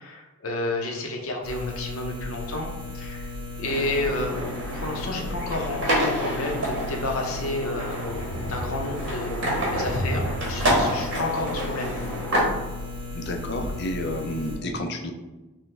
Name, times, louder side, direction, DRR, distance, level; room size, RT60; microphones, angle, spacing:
voice 1, 0.0-3.3 3.6-12.0, left 2 dB, 90° left, 1 dB, 0.8 m, -31 dB
sound 1, 1.4-14.6, left 2 dB, 25° right, 0.9 m, -35 dB
sound 2, 3.6-12.4, equal, 60° right, 1.3 m, -28 dB
voice 2, 13.1-15.1, left 1 dB, 50° left, 3 dB, 0.5 m, -30 dB
6.1 x 2.2 x 3.2 m, 1.1 s
head